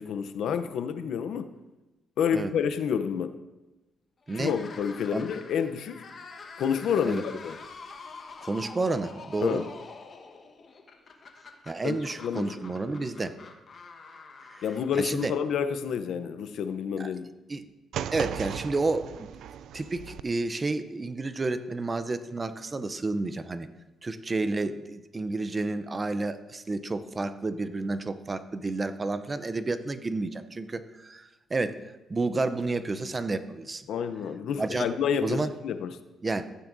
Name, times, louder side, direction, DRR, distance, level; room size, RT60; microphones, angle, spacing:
voice 1, 0.0-1.5 2.2-3.3 4.3-6.0 6.6-7.6 9.4-9.7 11.8-12.6 14.6-17.3 33.9-35.9, left 7 dB, 70° left, 10 dB, 0.6 m, -29 dB
sound 1, 4.2-15.5, left 4 dB, 45° left, 1.2 m, -46 dB
voice 2, 8.4-9.6 11.7-13.3 14.5-14.6 15.0-15.3 17.0-17.1 17.5-17.7 18.1-19.3 19.7-23.7 24.0-31.8 32.1-33.8 34.6-34.9 35.2-35.5 36.2-36.5, right 3 dB, 25° right, 12 dB, 0.6 m, -30 dB
sound 2, 17.9-20.2, right 9 dB, 75° right, 0.3 m, -36 dB
14.0 x 9.0 x 2.6 m, 1.1 s
cardioid pair, 90°, 0 cm